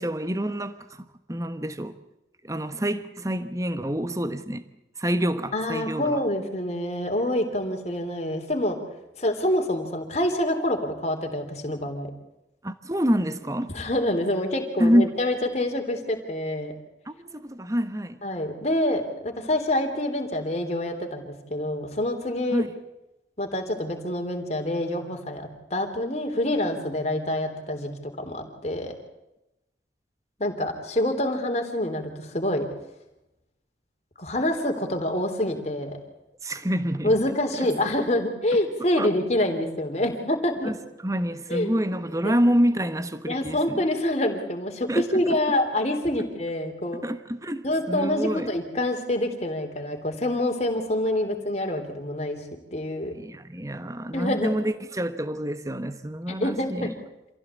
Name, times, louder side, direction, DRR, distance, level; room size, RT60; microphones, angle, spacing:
voice 1, 0.0-2.0 2.4-4.6 5.0-6.2 12.6-13.7 14.8-15.2 17.1-18.2 22.5-22.7 36.4-37.1 37.5-37.7 39.0-39.1 40.6-40.8 41.0-43.9 44.9-45.4 47.0-48.5 53.1-56.9, equal, 15° right, 1.2 m, -27 dB
voice 2, 5.5-8.8 9.2-12.1 13.7-16.7 18.2-22.6 23.4-27.9 28.3-28.9 30.4-32.6 34.2-36.0 37.0-40.7 41.5-41.8 42.2-42.4 43.3-47.0 47.6-52.4 52.7-53.1 54.1-54.5 56.3-56.9, left 1 dB, 35° left, 3.4 m, -26 dB
27.0 x 16.0 x 8.3 m
head